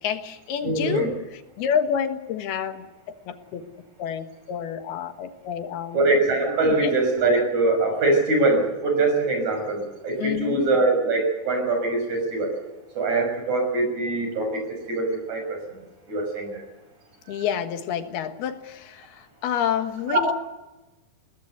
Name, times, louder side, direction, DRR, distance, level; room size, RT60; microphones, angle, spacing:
voice 1, 0.0-3.6 4.0-6.0 6.8-7.0 10.2-10.7 17.3-20.3, left 8 dB, 85° left, 8 dB, 3.5 m, -29 dB
voice 2, 0.6-1.1 5.9-12.5 13.0-15.6 16.1-16.6 17.3-17.4 20.2-20.3, right 2 dB, 50° right, 4 dB, 7.3 m, -23 dB
22.5 x 18.5 x 8.1 m, 1.1 s
omnidirectional pair, 4.4 m